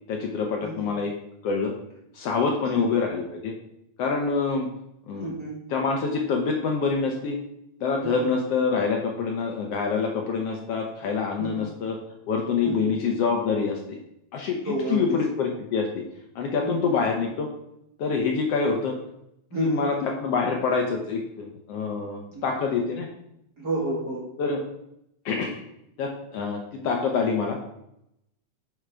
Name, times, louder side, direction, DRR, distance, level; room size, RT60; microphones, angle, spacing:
voice 1, 0.1-1.1 1.4-1.7 2.1-3.5 4.0-4.7 5.1-5.3 5.7-7.4 7.8-12.0 12.3-14.0 14.3-16.0 16.3-17.5 18.0-19.0 19.5-23.1 24.4-24.6 25.2-25.6 26.0-27.6, left 5 dB, 70° left, 2 dB, 1.7 m, -26 dB
voice 2, 5.2-5.6 8.0-8.3 11.4-11.7 12.6-12.9 14.6-15.2 16.6-16.9 19.5-19.8 22.3-22.6 23.6-24.3, right 2 dB, 40° right, -3 dB, 1.7 m, -31 dB
9.3 x 6.3 x 3.4 m, 0.79 s
omnidirectional pair, 3.3 m